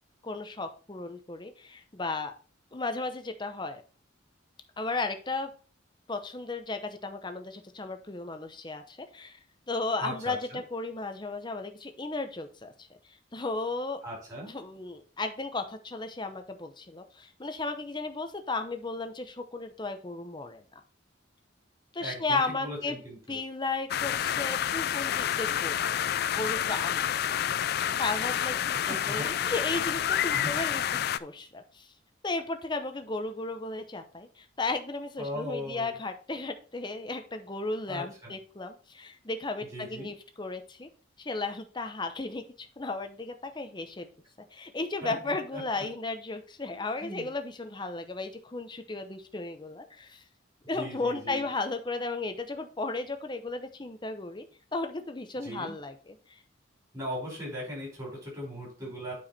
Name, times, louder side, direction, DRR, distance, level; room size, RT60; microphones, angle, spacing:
voice 1, 0.2-2.3 2.7-3.8 4.8-5.5 6.1-9.4 9.7-12.9 13.3-14.0 14.5-20.8 21.9-23.0 23.3-27.1 28.0-31.9 32.2-40.9 41.2-44.1 44.5-50.2 50.7-54.5 54.7-56.2, left 3 dB, 25° left, 7 dB, 0.8 m, -35 dB
voice 2, 10.0-10.6 14.0-14.5 22.0-23.4 28.9-29.3 30.3-30.7 35.2-35.9 37.9-38.3 39.7-40.1 45.0-45.9 46.7-47.3 50.7-51.5 55.4-55.7 56.9-59.1, equal, 20° right, -3 dB, 4.8 m, -39 dB
sound 1, 23.9-31.2, left 10 dB, 50° left, 0.3 m, -29 dB
8.9 x 4.8 x 4.2 m, 0.38 s
head